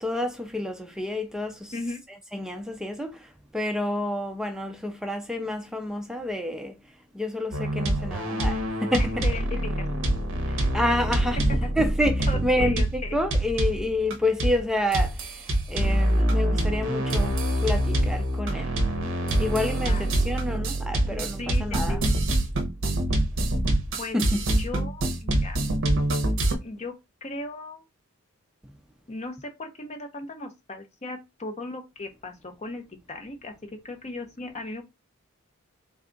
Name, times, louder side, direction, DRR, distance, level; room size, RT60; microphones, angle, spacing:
voice 1, 0.0-1.7 2.3-3.1 3.5-6.7 7.1-9.1 10.7-11.4 11.7-15.1 15.7-18.7 19.4-22.0 24.1-24.4, left 1 dB, 5° right, 0.3 m, -28 dB
sound 1, 7.5-14.1 14.4-14.7 14.9-26.5, right 1 dB, 60° right, 0.7 m, -25 dB
voice 2, 8.9-9.9 10.6-10.7 12.3-13.2 19.7-20.1 21.2-22.1 24.0-24.2 24.6-25.6 26.6-27.8 29.1-33.5 33.8-34.8, left 2 dB, 30° left, 0.7 m, -37 dB
3.5 x 2.3 x 3.7 m
head